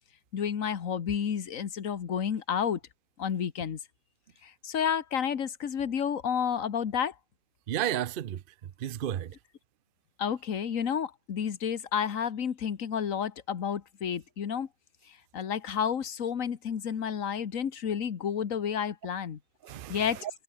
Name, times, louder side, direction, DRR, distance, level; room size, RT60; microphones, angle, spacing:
voice 1, 0.3-2.8 3.2-3.8 4.6-7.1 10.2-14.7 15.3-19.4 19.9-20.2, left 8 dB, 80° left, 1.7 m, -30 dB
voice 2, 7.7-9.3 19.6-20.3, right 11 dB, 55° right, 0.7 m, -33 dB
omnidirectional pair, 1.4 m